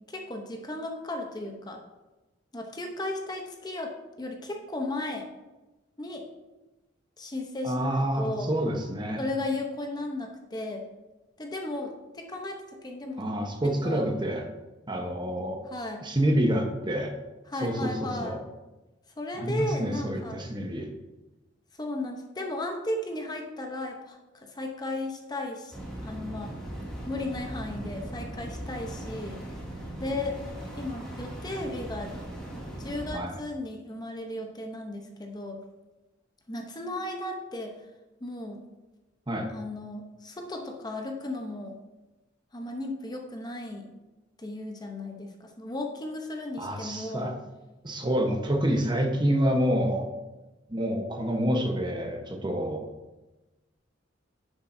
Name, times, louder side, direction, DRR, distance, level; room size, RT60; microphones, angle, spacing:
voice 1, 0.0-1.8 2.5-5.3 6.0-6.3 7.2-7.7 8.2-8.5 9.2-10.9 11.4-13.2 13.8-14.0 15.7-16.0 17.5-18.4 19.2-20.4 21.8-25.8 26.0-26.5 27.1-29.4 30.0-30.4 30.8-32.1 32.8-35.6 36.5-37.8 38.2-38.6 39.5-41.8 42.5-43.9 44.4-47.3, left 2 dB, 20° left, 2 dB, 0.8 m, -35 dB
voice 2, 7.6-9.2 13.2-14.5 14.9-15.7 16.0-17.1 17.6-18.4 19.3-20.9 33.1-33.4 39.3-39.5 46.6-47.3 47.8-50.1 50.7-52.9, equal, 25° right, 3 dB, 1.0 m, -28 dB
sound 1, 25.7-33.1, right 1 dB, 5° left, 2.4 m, -38 dB
10.5 x 7.2 x 2.7 m, 1.1 s
head